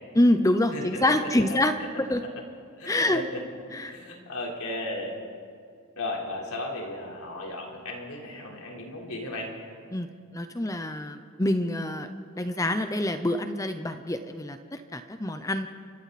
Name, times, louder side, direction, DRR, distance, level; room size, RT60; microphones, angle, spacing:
voice 1, 0.2-1.7 2.0-2.2 2.9-3.2 3.7-4.0 9.9-10.1 10.3-12.1 12.4-14.6 14.9-15.7, left 1 dB, 15° left, 9 dB, 0.7 m, -25 dB
voice 2, 0.7-1.4 2.2-2.3 2.8-3.4 3.9-5.2 6.0-9.5, left 1 dB, 85° left, -1 dB, 4.2 m, -35 dB
30.0 x 24.5 x 4.2 m, 2.2 s
head